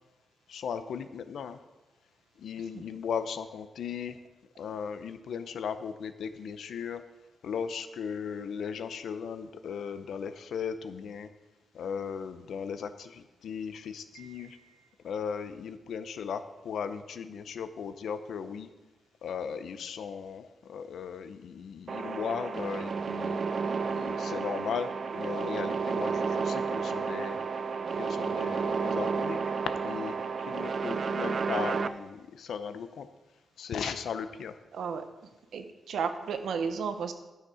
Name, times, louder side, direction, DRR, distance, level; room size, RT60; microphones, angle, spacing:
voice 1, 0.5-1.6 2.4-4.2 4.6-7.0 7.4-11.3 11.7-14.6 15.0-18.7 19.2-23.4 23.9-27.4 28.0-29.4 29.8-30.1 30.5-33.1 33.6-34.6, left 7 dB, 80° left, 11 dB, 0.6 m, -37 dB
voice 2, 14.1-14.5 34.7-35.0 35.5-37.1, right 6 dB, 75° right, 8 dB, 0.9 m, -33 dB
sound 1, 21.9-31.9, right 5 dB, 40° right, 0.4 m, -31 dB
12.0 x 6.5 x 4.9 m, 1.1 s
wide cardioid pair, 180°, 0 cm